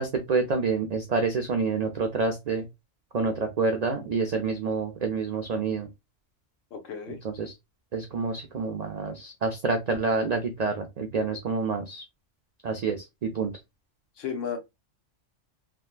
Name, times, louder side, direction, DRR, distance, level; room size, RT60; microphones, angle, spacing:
voice 1, 0.0-2.6 3.1-5.9 7.2-7.5 7.9-12.0 12.6-13.5, right 4 dB, 75° right, 0.3 m, -28 dB
voice 2, 6.7-7.2 14.2-14.6, left 7 dB, 80° left, 1.1 m, -33 dB
3.4 x 2.2 x 2.4 m
omnidirectional pair, 1.3 m